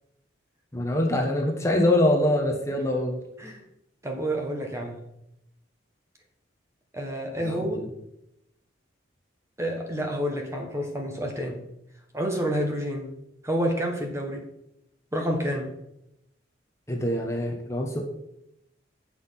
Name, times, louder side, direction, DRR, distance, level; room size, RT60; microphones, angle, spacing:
voice 1, 0.7-3.2 7.4-7.9 16.9-18.0, left 1 dB, 15° left, 1 dB, 1.2 m, -24 dB
voice 2, 4.0-5.0 6.9-7.8 9.6-11.6 12.1-13.1 13.4-14.4 15.1-15.7, equal, 15° right, 2 dB, 1.3 m, -29 dB
8.7 x 5.9 x 5.8 m, 0.82 s
head